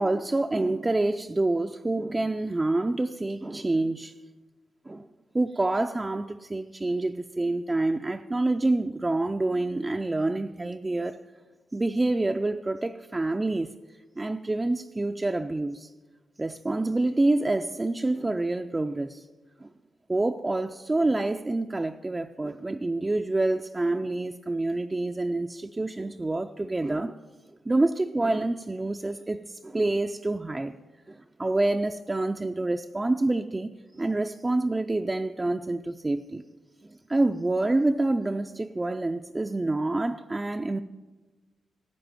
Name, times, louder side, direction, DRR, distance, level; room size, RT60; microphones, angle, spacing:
voice 1, 0.0-4.1 4.9-5.1 5.3-11.2 11.7-13.7 14.2-15.9 16.4-19.3 19.6-19.7 20.1-27.2 27.7-30.7 31.1-33.7 33.9-36.4 36.8-40.8, right 2 dB, 15° right, 0.4 m, -27 dB
13.0 x 8.7 x 9.0 m
wide cardioid pair, 135°, 0 cm